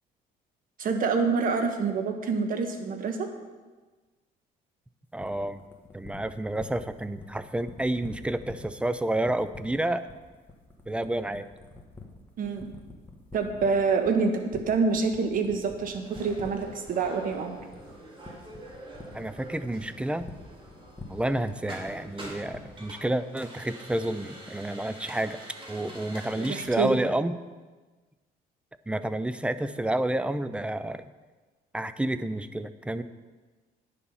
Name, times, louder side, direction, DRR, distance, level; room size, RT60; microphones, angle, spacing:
voice 1, 0.8-3.3 12.4-12.7 13.3-14.3 14.7-17.6 26.4-27.0, right 5 dB, 55° right, 6 dB, 1.3 m, -26 dB
voice 2, 5.1-5.6 5.9-10.1 10.9-11.5 19.1-20.3 21.1-25.4 25.7-27.3 28.9-31.1 31.7-33.0, right 1 dB, 5° right, 12 dB, 0.4 m, -30 dB
sound 1, 5.2-23.0, left 2 dB, 10° left, 1.6 m, -46 dB
sound 2, 16.0-26.7, right 1 dB, 30° right, 2.9 m, -45 dB
9.9 x 6.9 x 5.6 m, 1.3 s
cardioid pair, 110°, 17 cm